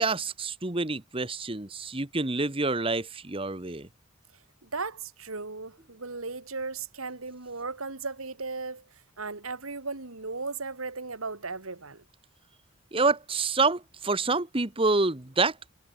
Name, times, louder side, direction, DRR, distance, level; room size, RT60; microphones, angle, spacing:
voice 1, 0.0-3.9 12.9-15.7, right 3 dB, 25° right, 1.3 m, -27 dB
voice 2, 4.6-12.0, right 4 dB, 85° right, 2.5 m, -36 dB
head